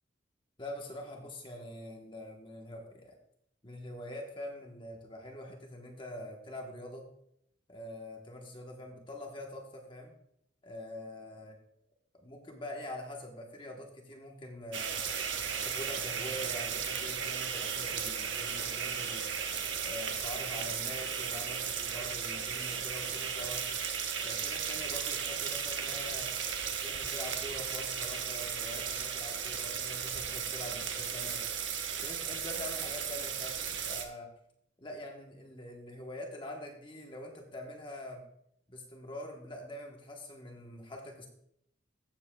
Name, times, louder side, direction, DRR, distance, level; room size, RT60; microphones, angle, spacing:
voice 1, 0.6-3.2 3.6-7.0 7.7-10.1 10.6-11.5 12.1-15.0 15.5-19.3 19.8-23.7 24.2-26.3 26.8-31.4 32.0-34.3 34.8-38.2 38.7-41.3, left 1 dB, 25° left, 1 dB, 1.1 m, -44 dB
sound 1, 14.7-34.1, right 7 dB, 80° right, 1.0 m, -35 dB
14.5 x 7.4 x 2.3 m, 0.75 s
head